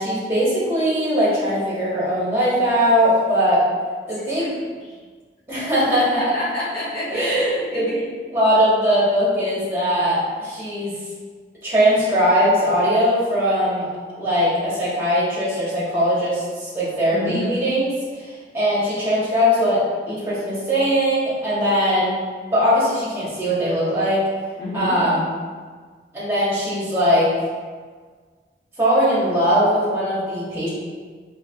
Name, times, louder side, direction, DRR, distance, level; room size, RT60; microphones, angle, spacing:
voice 1, 0.0-3.6 4.1-4.6 5.5-6.1 7.1-10.9 11.6-13.9 14.2-17.9 18.2-22.2 22.5-24.2 24.7-25.3 26.1-27.3 28.8-30.7, equal, 15° right, -9 dB, 1.3 m, -20 dB
voice 2, 4.2-4.5 6.0-7.2 7.7-7.9 17.1-17.5 24.6-25.0, left 1 dB, 60° left, -9 dB, 1.3 m, -29 dB
4.5 x 3.1 x 2.4 m, 1.5 s
head